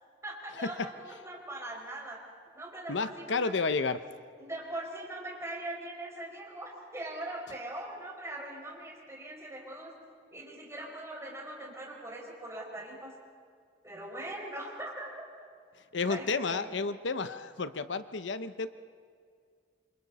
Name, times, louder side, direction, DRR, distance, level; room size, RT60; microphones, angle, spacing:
voice 1, 0.2-2.2 2.5-3.5 4.4-9.9 10.3-13.1 13.8-15.1 16.1-16.7, right 1 dB, 15° right, -2 dB, 5.5 m, -41 dB
voice 2, 2.9-4.0 15.9-18.7, left 4 dB, 90° left, 11 dB, 0.8 m, -31 dB
27.5 x 26.5 x 4.2 m, 2.1 s
head